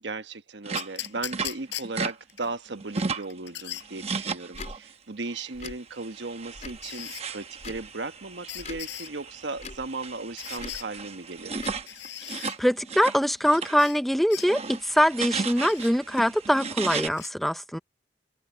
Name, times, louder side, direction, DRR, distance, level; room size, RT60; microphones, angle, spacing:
voice 1, 0.0-11.7, right 3 dB, 80° right, 1.2 m, -36 dB
sound 1, 0.6-2.1 2.5-3.4 3.8-4.9 5.2-5.5 5.9-13.2 13.4-13.8 14.2-17.1, right 4 dB, 35° right, 1.0 m, -35 dB
sound 2, 0.8-2.5 3.0-3.9 5.4-5.5 6.8-7.2 8.5-9.1 10.4-10.9 11.9-12.6 13.8-14.0 14.3-14.5 15.6-15.9 17.1-17.3, left 13 dB, 85° left, 4.6 m, -38 dB
Tick / Tick-tock, 4.5-4.8 5.5-5.8 6.5-6.9 7.6-7.9 8.6-8.9 9.6-9.9 10.6-10.8 11.6-11.8, left 3 dB, 40° left, 4.5 m, -41 dB
voice 2, 12.3-17.8, equal, ahead, 0.6 m, -23 dB
head